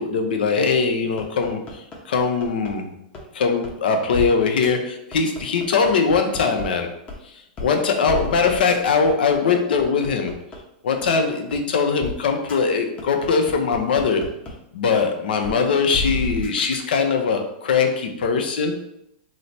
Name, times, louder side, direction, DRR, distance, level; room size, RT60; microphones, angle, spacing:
voice 1, 0.0-2.9 3.3-6.9 7.2-10.3 10.8-14.3 14.7-18.8, left 5 dB, 85° left, 5 dB, 0.6 m, -21 dB
sound 1, 1.2-2.7 3.1-3.2 3.6-3.7 4.1-4.3 4.6-4.7 5.1-6.6 7.1-7.2 7.6-7.7 8.1-10.6 11.0-11.1 11.5-11.6 12.0-12.1 12.5-12.6 13.0-14.5 14.9-15.0 15.4-15.5 15.9-16.8, left 3 dB, 25° left, 0.7 m, -31 dB
3.1 x 2.0 x 4.0 m, 0.79 s
supercardioid pair, 140°, 5 cm